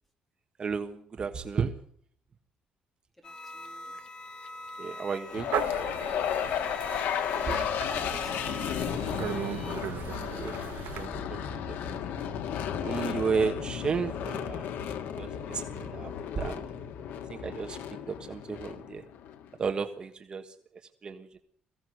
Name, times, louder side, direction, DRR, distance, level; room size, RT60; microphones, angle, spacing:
voice 1, 0.6-1.7 4.8-5.5 7.5-7.6 7.9-8.0 10.3-10.6 10.9-12.0 12.8-16.7 17.3-19.0 19.6-20.6 21.0-21.4, right 5 dB, 30° right, 6 dB, 1.4 m, -33 dB
sound 1, 3.2-9.8, left 2 dB, 30° left, 2.5 m, -44 dB
voice 2, 3.2-4.0 7.4-9.4, right 1 dB, 5° left, 7 dB, 2.8 m, -50 dB
sound 2, 5.3-19.5, left 9 dB, 85° left, 1.9 m, -34 dB
sound 3, 5.5-11.1, right 12 dB, 75° right, 1.1 m, -37 dB
22.0 x 16.0 x 7.9 m, 0.63 s
cardioid pair, 160°, 3 cm